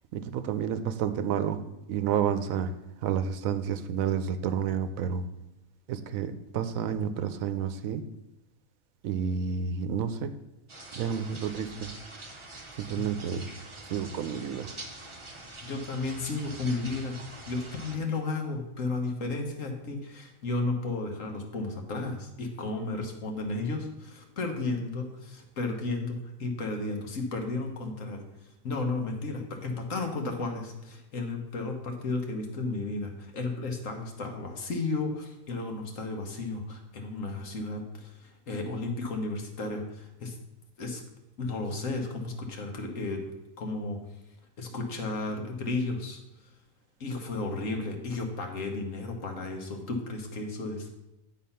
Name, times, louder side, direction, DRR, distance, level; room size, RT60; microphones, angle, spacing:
voice 1, 0.1-1.6 1.9-2.7 3.0-5.2 5.9-8.0 9.0-10.3 10.9-11.9 12.8-13.5 13.8-14.7, right 8 dB, 75° right, 10 dB, 1.0 m, -30 dB
sound 1, 10.7-18.0, right 2 dB, 25° right, 0.8 m, -45 dB
voice 2, 15.6-17.2 17.5-28.2 28.6-40.4 40.8-41.0 41.4-43.2 43.6-44.0 44.6-46.2 47.0-51.0, left 3 dB, 70° left, 3 dB, 1.6 m, -33 dB
9.3 x 4.1 x 5.6 m, 0.94 s
omnidirectional pair, 1.4 m